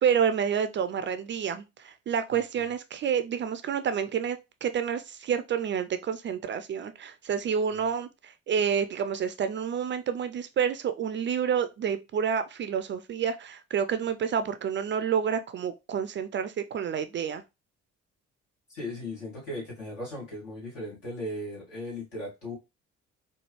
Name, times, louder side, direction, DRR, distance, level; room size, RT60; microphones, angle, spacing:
voice 1, 0.0-17.4, right 7 dB, 30° right, 0.4 m, -29 dB
voice 2, 2.3-2.6 18.7-22.5, left 1 dB, 75° left, 2.4 m, -37 dB
4.3 x 2.3 x 3.1 m
figure-of-eight pair, 40°, 38 cm